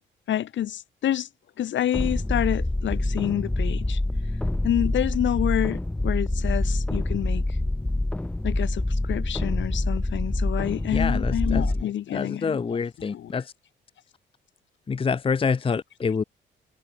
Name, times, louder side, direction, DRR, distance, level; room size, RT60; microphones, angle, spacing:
voice 1, 0.3-1.3 1.6-4.0 4.6-7.4 8.4-13.3 15.7-15.8, left 11 dB, 70° left, 2.4 m, -28 dB
sound 1, 1.9-11.8, left 1 dB, 5° left, 0.4 m, -26 dB
voice 2, 10.9-11.6 12.1-13.4 14.9-16.2, left 5 dB, 25° left, 0.8 m, -26 dB
cardioid pair, 90°, 20 cm